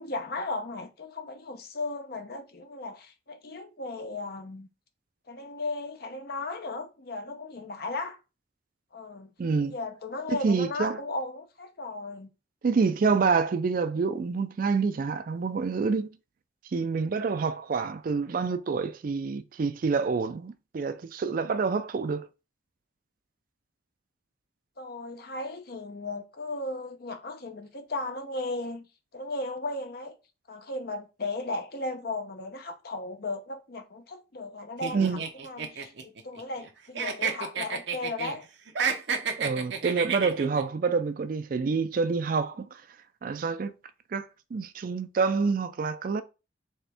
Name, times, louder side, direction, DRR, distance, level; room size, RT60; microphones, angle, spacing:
voice 1, 0.0-4.7 5.3-8.2 8.9-9.3 9.6-12.3 24.8-28.9 29.1-30.2 30.5-38.5, left 2 dB, 50° left, 0.7 m, -36 dB
voice 2, 9.4-9.7 10.3-11.0 12.6-16.1 16.7-22.3 34.9-35.2 39.4-42.8 43.2-43.7 44.1-46.2, right 4 dB, 45° right, 0.3 m, -27 dB
sound 1, 34.8-36.7 36.9-38.3 38.7-40.6, right 5 dB, 60° right, 0.7 m, -31 dB
4.2 x 3.4 x 3.4 m
head